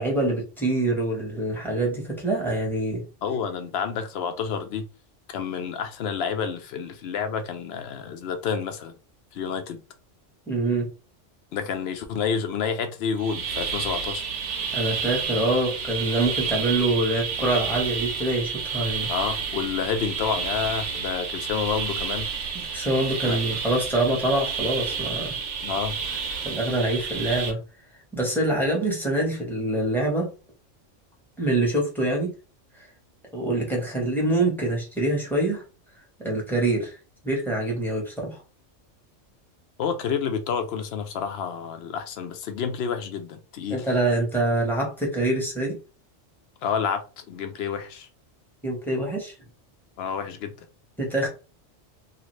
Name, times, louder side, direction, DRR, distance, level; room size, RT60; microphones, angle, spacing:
voice 1, 0.0-3.0 10.5-10.9 14.7-19.1 22.7-25.4 26.4-27.6 28.1-30.3 31.4-32.3 33.3-35.6 36.2-37.0 37.2-38.4 43.7-45.8 48.6-49.3 51.0-51.3, right 2 dB, ahead, 0.9 m, -25 dB
voice 2, 3.2-4.9 5.3-8.9 9.3-9.8 11.5-14.3 19.1-22.3 23.2-23.4 25.6-26.0 39.8-43.8 46.6-48.1 50.0-50.5, left 6 dB, 65° left, 0.7 m, -29 dB
sound 1, 13.2-27.5, right 6 dB, 75° right, 0.9 m, -30 dB
2.6 x 2.4 x 3.1 m
omnidirectional pair, 1.3 m